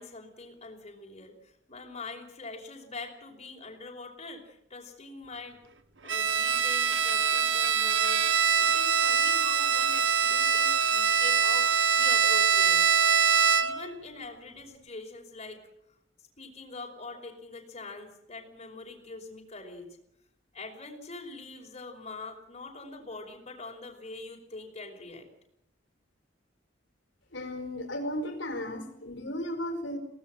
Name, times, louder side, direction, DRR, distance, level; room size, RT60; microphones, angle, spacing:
voice 1, 0.0-5.6 6.0-12.8 13.6-15.6 16.4-19.9 20.5-25.3, left 3 dB, 35° left, 1 dB, 5.4 m, -44 dB
Bowed string instrument, 6.1-13.9, right 7 dB, 70° right, 1.3 m, -24 dB
voice 2, 27.3-30.0, left 1 dB, 80° left, 4 dB, 4.7 m, -35 dB
23.5 x 18.5 x 7.8 m, 0.75 s
head